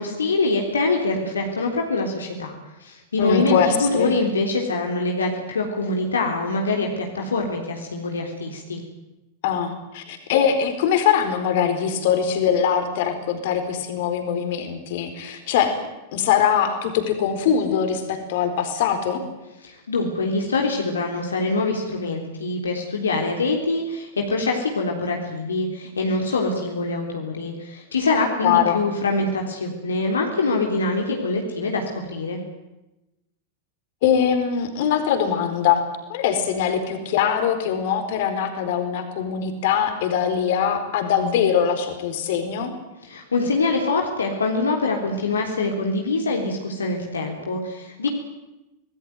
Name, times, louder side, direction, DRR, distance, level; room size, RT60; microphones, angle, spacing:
voice 1, 0.0-8.8 19.6-32.4 43.0-48.1, left 3 dB, 70° left, 1 dB, 3.5 m, -24 dB
voice 2, 3.2-4.2 9.4-15.7 16.1-19.2 28.4-28.9 34.0-35.8 36.1-42.7, left 8 dB, 50° left, 7 dB, 4.5 m, -22 dB
26.0 x 19.5 x 9.4 m, 0.98 s
figure-of-eight pair, 90°, 0 cm